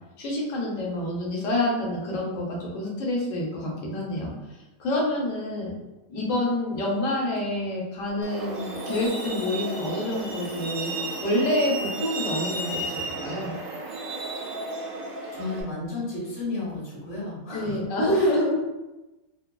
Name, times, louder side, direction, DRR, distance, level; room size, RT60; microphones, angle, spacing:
voice 1, 0.2-4.3 4.8-5.7 6.1-10.9 11.2-13.6 17.5-18.6, left 1 dB, 70° left, -3 dB, 1.1 m, -27 dB
Truck, 8.2-15.6, right 2 dB, 75° right, 1.0 m, -33 dB
voice 2, 15.3-17.8 18.1-18.3, left 2 dB, 35° left, -7 dB, 0.6 m, -33 dB
2.7 x 2.2 x 2.2 m, 1.1 s
omnidirectional pair, 1.5 m